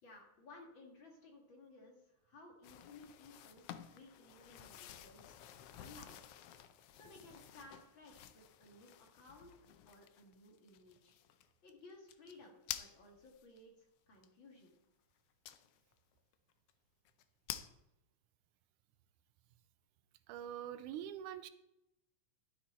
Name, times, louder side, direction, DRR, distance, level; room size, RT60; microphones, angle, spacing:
voice 1, 0.0-3.6 3.9-5.4 5.7-6.2 6.9-11.1 11.6-14.8, left 2 dB, 45° left, 1 dB, 2.1 m, -58 dB
sound 1, 2.6-13.6 14.2-14.3 15.4-15.9 16.3-16.4 16.7-16.8 17.0-17.7, left 11 dB, 90° left, 1.3 m, -51 dB
voice 2, 20.3-21.5, right 10 dB, 90° right, 13 dB, 2.2 m, -44 dB
12.0 x 8.3 x 4.2 m, 0.87 s
omnidirectional pair, 3.5 m